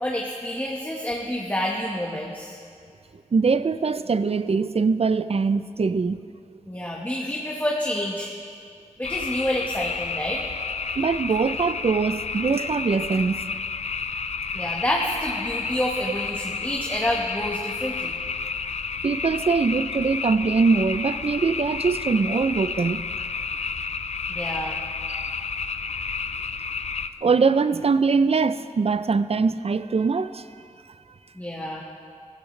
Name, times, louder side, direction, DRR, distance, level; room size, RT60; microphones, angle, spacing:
voice 1, 0.0-2.6 6.7-8.3 9.0-10.5 14.5-18.1 24.3-24.8 31.4-31.8, left 1 dB, 15° left, -2 dB, 1.5 m, -28 dB
voice 2, 3.3-6.2 11.0-13.5 19.0-23.0 27.2-30.4, right 4 dB, 50° right, 13 dB, 0.5 m, -22 dB
sound 1, 9.0-27.1, left 5 dB, 60° left, 0.5 m, -31 dB
17.5 x 15.0 x 3.3 m, 2.3 s
wide cardioid pair, 55°, 13 cm